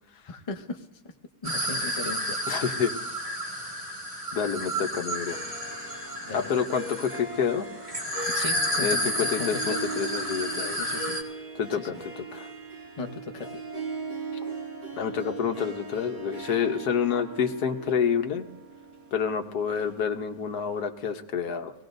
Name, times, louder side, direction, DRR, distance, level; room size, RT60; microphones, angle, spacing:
voice 1, 0.3-0.8 1.4-2.7 6.2-6.5 8.3-9.9 10.7-11.2 11.8-12.0 13.0-13.5, left 4 dB, 25° left, 3 dB, 0.8 m, -37 dB
sound 1, 1.4-11.2, equal, 20° right, 1.8 m, -31 dB
voice 2, 2.5-3.0 4.3-5.4 6.3-7.7 8.8-11.0 11.5-12.5 15.0-18.5 19.1-21.7, left 7 dB, 70° left, 5 dB, 1.5 m, -28 dB
Harp, 5.1-20.4, right 3 dB, 45° right, 5.6 m, -39 dB
23.5 x 17.5 x 2.6 m, 0.91 s
omnidirectional pair, 1.8 m